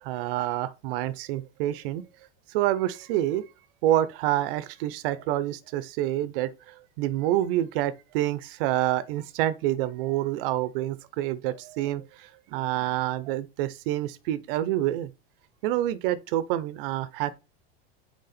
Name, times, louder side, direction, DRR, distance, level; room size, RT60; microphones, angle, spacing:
voice 1, 0.0-2.0 2.5-3.5 3.8-15.1 15.6-17.3, right 13 dB, 60° right, 0.7 m, -27 dB
6.6 x 4.7 x 4.2 m
supercardioid pair, 150°, 31 cm